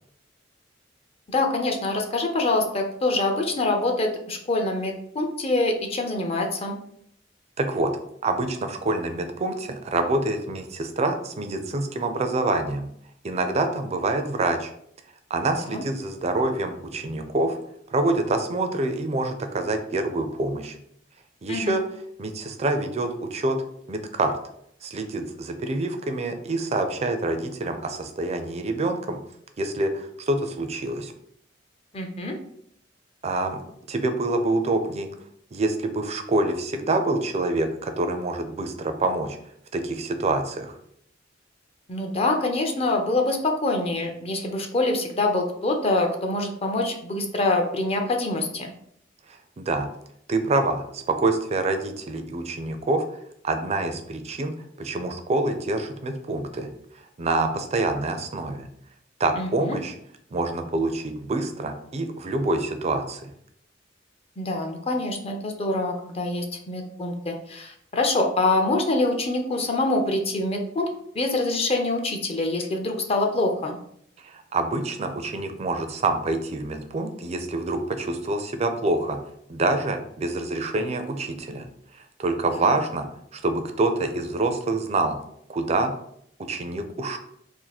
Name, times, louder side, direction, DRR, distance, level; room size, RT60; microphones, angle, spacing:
voice 1, 1.3-6.8 15.7-15.8 21.5-21.8 31.9-32.4 41.9-48.7 59.4-59.8 64.4-70.9 71.1-73.8 82.5-82.7, left 2 dB, 30° left, 3 dB, 0.5 m, -25 dB
voice 2, 7.6-7.9 8.2-12.9 13.2-14.7 15.3-17.6 17.9-20.8 21.4-21.8 22.2-23.6 23.9-24.4 24.8-29.2 29.6-31.1 33.2-33.6 33.9-35.1 35.5-39.4 39.7-40.7 49.6-49.9 50.3-53.0 53.4-56.7 57.2-58.7 59.2-59.9 60.3-63.3 74.2-79.2 79.5-81.7 82.2-83.1 83.3-85.2 85.5-85.9 86.4-87.2, right 2 dB, 35° right, 7 dB, 0.4 m, -26 dB
2.7 x 2.5 x 4.0 m, 0.69 s
head